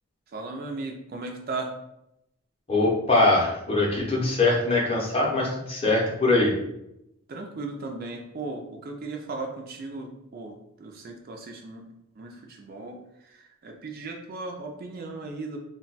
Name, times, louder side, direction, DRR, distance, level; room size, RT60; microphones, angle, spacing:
voice 1, 0.3-1.7 7.3-11.8 12.2-15.6, right 3 dB, 45° right, 2 dB, 0.3 m, -37 dB
voice 2, 2.7-6.5, left 2 dB, 25° left, -2 dB, 0.6 m, -22 dB
2.2 x 2.2 x 3.9 m, 0.82 s
head